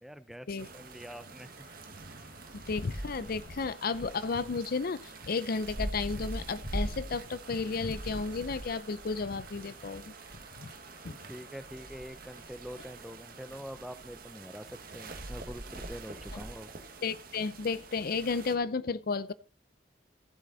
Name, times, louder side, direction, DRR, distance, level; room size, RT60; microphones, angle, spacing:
voice 1, 0.0-0.5 0.7-1.6 11.0-16.7, equal, ahead, 0.5 m, -45 dB
sound 1, 0.6-18.5, right 2 dB, 50° right, 1.5 m, -43 dB
sound 2, 1.4-5.9 7.3-12.8, left 2 dB, 70° left, 6.5 m, -60 dB
voice 2, 2.5-10.1 10.6-10.7 11.0-11.2 16.3-16.4 17.0-19.3, left 4 dB, 50° left, 0.5 m, -33 dB
15.5 x 7.6 x 4.0 m
head